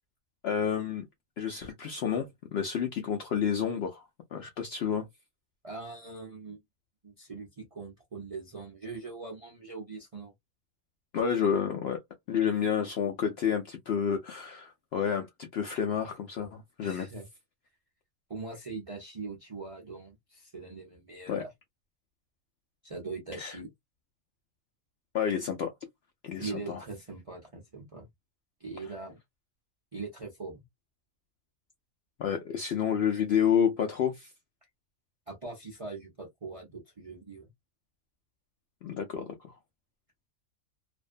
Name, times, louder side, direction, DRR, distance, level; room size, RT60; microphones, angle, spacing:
voice 1, 0.4-1.1 1.4-4.0 4.3-5.1 11.1-12.0 12.3-17.1 21.3-21.4 23.3-23.6 25.1-25.7 26.2-26.8 32.2-34.3 38.8-39.5, left 8 dB, 65° left, 0.6 m, -29 dB
voice 2, 5.6-6.6 7.0-10.3 16.8-17.3 18.3-21.5 22.8-23.7 26.4-28.1 28.6-29.2 29.9-30.6 35.3-37.5, right 3 dB, 40° right, 0.5 m, -41 dB
2.5 x 2.1 x 2.4 m
omnidirectional pair, 1.5 m